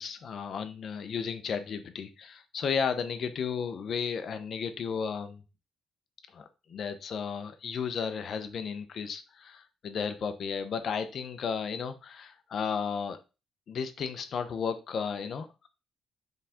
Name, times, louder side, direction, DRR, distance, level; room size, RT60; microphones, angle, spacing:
voice 1, 0.0-5.4 6.3-13.2 13.7-15.7, left 6 dB, 55° left, 9 dB, 1.0 m, -34 dB
5.4 x 3.7 x 5.1 m, 0.29 s
cardioid pair, 90°, 0 cm